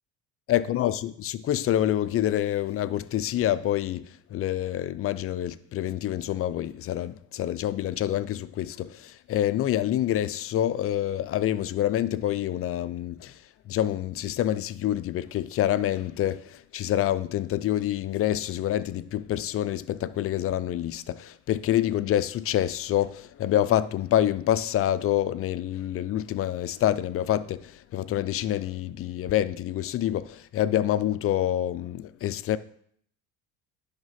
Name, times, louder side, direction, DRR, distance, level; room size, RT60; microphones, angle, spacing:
voice 1, 0.5-32.6, left 12 dB, 40° left, 0.5 m, -27 dB
10.5 x 3.6 x 5.7 m
supercardioid pair, 105°, 35 cm